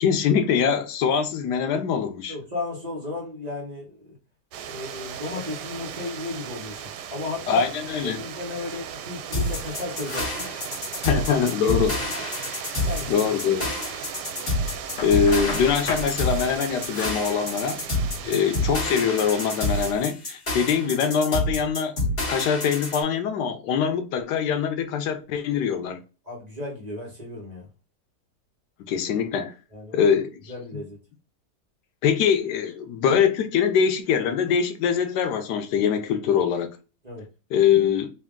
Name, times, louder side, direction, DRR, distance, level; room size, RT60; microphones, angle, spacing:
voice 1, 0.0-2.3 7.5-8.2 11.0-11.9 13.1-13.7 14.7-14.8 15.0-21.9 22.3-26.0 28.8-29.5 29.9-30.4 32.0-36.7 37.5-38.1, left 7 dB, 90° left, 1.3 m, -23 dB
voice 2, 2.3-4.2 4.6-6.8 7.1-7.6 8.0-10.5 11.1-11.2 11.7-12.2 12.9-13.3 18.2-18.4 26.2-27.6 29.7-30.1 30.5-31.0 37.0-37.2, left 2 dB, 25° right, 1.2 m, -34 dB
sound 1, 4.5-19.9, right 9 dB, 85° right, 1.2 m, -37 dB
sound 2, 9.3-23.0, left 1 dB, 35° left, 1.9 m, -28 dB
Knock, 15.0-16.1, left 2 dB, 55° left, 1.1 m, -33 dB
3.4 x 2.6 x 3.6 m
omnidirectional pair, 1.8 m